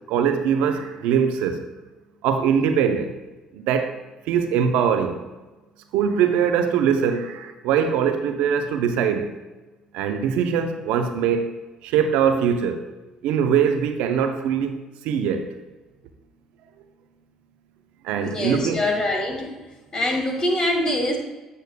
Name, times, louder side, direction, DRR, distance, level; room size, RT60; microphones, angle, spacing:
voice 1, 0.1-1.6 2.2-3.1 3.5-3.9 4.3-5.2 5.9-9.3 9.9-11.5 11.8-12.8 13.2-14.8 15.0-15.5 18.0-18.8, right 7 dB, 75° right, 7 dB, 0.6 m, -22 dB
voice 2, 18.2-19.5 19.9-21.2, left 1 dB, 35° left, 2 dB, 1.5 m, -24 dB
8.3 x 6.6 x 2.2 m, 1.2 s
supercardioid pair, 65°, 2 cm